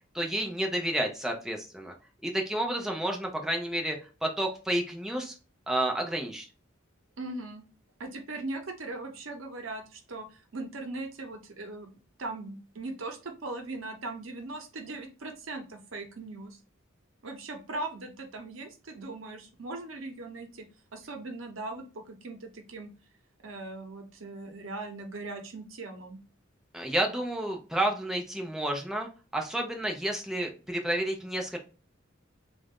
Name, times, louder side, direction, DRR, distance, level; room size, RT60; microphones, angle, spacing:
voice 1, 0.1-1.9 2.2-5.3 5.7-6.5 26.7-31.6, right 1 dB, ahead, 1 dB, 0.6 m, -30 dB
voice 2, 7.2-7.6 8.0-11.9 12.2-16.6 17.2-20.7 20.9-22.9 23.4-26.2, right 2 dB, 85° right, 4 dB, 0.9 m, -39 dB
3.3 x 2.5 x 3.5 m, 0.34 s
head